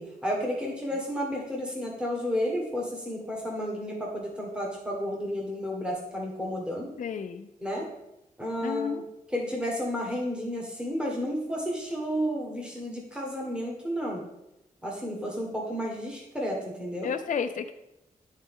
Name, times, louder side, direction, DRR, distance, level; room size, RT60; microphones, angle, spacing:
voice 1, 0.0-6.9 7.6-7.9 8.4-9.0 9.3-14.2 14.8-17.1, equal, 5° right, -2 dB, 1.5 m, -32 dB
voice 2, 7.0-7.5 8.6-9.0 17.0-17.7, left 7 dB, 60° left, 7 dB, 0.5 m, -31 dB
11.5 x 4.0 x 3.7 m, 0.88 s
wide cardioid pair, 125°, 15 cm